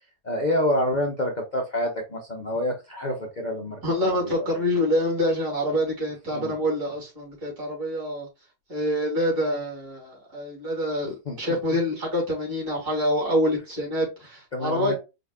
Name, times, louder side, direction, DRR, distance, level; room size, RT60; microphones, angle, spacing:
voice 1, 0.2-4.5 6.3-6.6 11.3-11.4 14.5-14.9, left 1 dB, 85° left, 1 dB, 0.4 m, -28 dB
voice 2, 3.8-8.3 8.7-15.0, equal, 60° right, -3 dB, 3.4 m, -26 dB
5.0 x 3.9 x 2.3 m, 0.26 s
omnidirectional pair, 2.0 m